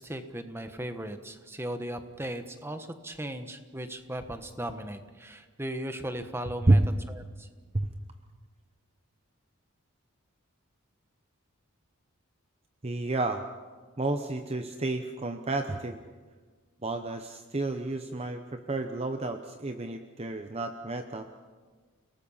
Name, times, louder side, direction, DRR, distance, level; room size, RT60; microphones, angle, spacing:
voice 1, 0.0-6.8 7.1-7.5, right 1 dB, 10° right, 7 dB, 1.3 m, -37 dB
voice 2, 12.8-13.4 14.0-16.0 16.8-21.3, right 2 dB, 30° right, 6 dB, 0.9 m, -29 dB
29.5 x 19.0 x 5.7 m, 1.4 s
head